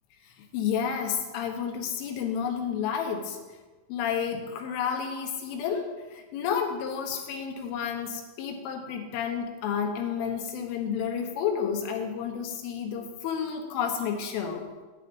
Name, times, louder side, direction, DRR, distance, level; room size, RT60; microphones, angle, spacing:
voice 1, 0.5-3.4 3.9-14.7, left 7 dB, 80° left, 3 dB, 3.8 m, -31 dB
10.0 x 9.3 x 5.4 m, 1.3 s
omnidirectional pair, 5.8 m